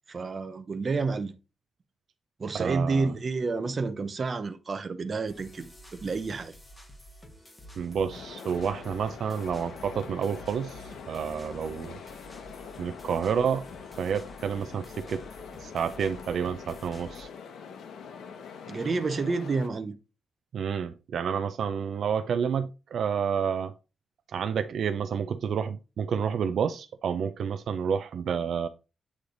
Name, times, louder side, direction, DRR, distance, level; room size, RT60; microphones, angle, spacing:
voice 1, 0.1-1.3 2.4-5.7 6.0-6.5 18.7-19.9, right 4 dB, 35° right, 0.7 m, -29 dB
voice 2, 2.5-3.1 7.8-12.0 12.8-13.6 14.0-15.2 15.6-17.3 20.5-23.7 24.3-28.7, right 7 dB, 65° right, 0.4 m, -29 dB
sound 1, 5.3-17.2, equal, 15° left, 1.2 m, -50 dB
sound 2, 8.1-19.7, left 6 dB, 90° left, 0.9 m, -44 dB
8.5 x 3.3 x 3.8 m
wide cardioid pair, 135°, 0 cm